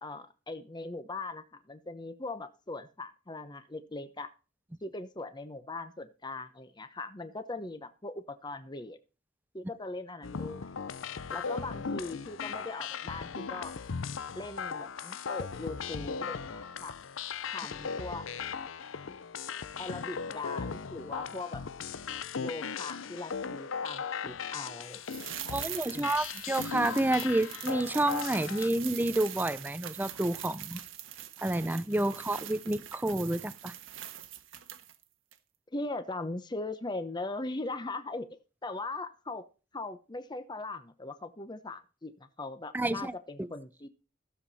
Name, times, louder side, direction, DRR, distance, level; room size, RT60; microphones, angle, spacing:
voice 1, 0.0-4.3 4.8-9.0 9.5-10.7 11.3-13.8 14.4-17.0 17.5-18.3 19.1-19.2 19.8-21.6 22.4-25.4 25.9-26.1 35.7-39.4 39.7-43.9, left 2 dB, 20° left, 0.8 m, -40 dB
sound 1, 10.2-28.7, left 6 dB, 85° left, 0.6 m, -38 dB
sound 2, 25.1-35.0 35.3-35.4, right 11 dB, 85° right, 1.4 m, -43 dB
voice 2, 25.5-30.8 31.4-33.7 42.7-43.5, right 1 dB, 10° right, 0.5 m, -29 dB
15.0 x 7.4 x 4.2 m
head